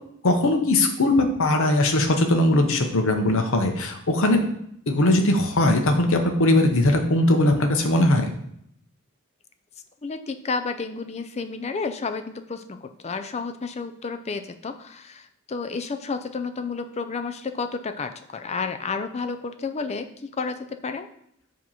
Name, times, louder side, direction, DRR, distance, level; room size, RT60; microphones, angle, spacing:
voice 1, 0.2-4.4 4.9-8.3, left 1 dB, 65° left, 4 dB, 0.9 m, -20 dB
voice 2, 10.0-21.1, left 4 dB, 30° left, 8 dB, 0.5 m, -31 dB
7.4 x 3.0 x 5.6 m, 0.72 s
head